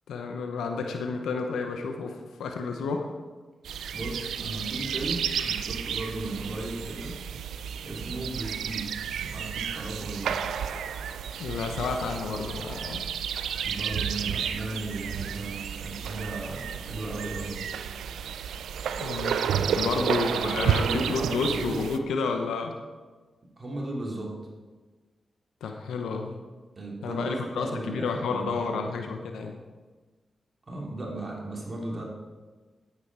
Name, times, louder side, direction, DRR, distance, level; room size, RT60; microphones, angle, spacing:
voice 1, 0.1-3.1 11.4-13.0 19.0-19.5 19.7-22.8 25.6-26.4 27.0-29.6, left 4 dB, 90° left, 4 dB, 0.8 m, -31 dB
sound 1, 3.6-22.0, right 8 dB, 90° right, 0.4 m, -31 dB
voice 2, 3.9-7.2 7.8-10.4 13.6-17.7 19.5-21.8 23.6-24.4 26.8-28.8 30.7-32.0, right 2 dB, 45° right, -2 dB, 3.0 m, -36 dB
9.5 x 8.5 x 4.8 m, 1.3 s
supercardioid pair, 45°, 0 cm